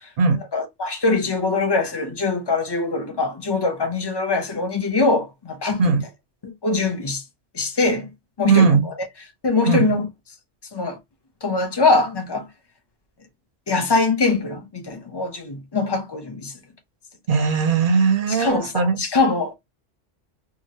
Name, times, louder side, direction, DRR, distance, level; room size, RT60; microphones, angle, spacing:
voice 1, 0.0-6.0 6.4-7.2 7.5-8.1 8.4-8.9 9.4-10.0 10.7-11.0 11.4-12.5 13.7-16.5 18.3-19.5, left 3 dB, 45° left, 0.3 m, -23 dB
voice 2, 8.5-8.9 9.7-9.9 17.3-19.0, right 5 dB, 55° right, 0.6 m, -18 dB
2.8 x 2.4 x 2.7 m
omnidirectional pair, 1.3 m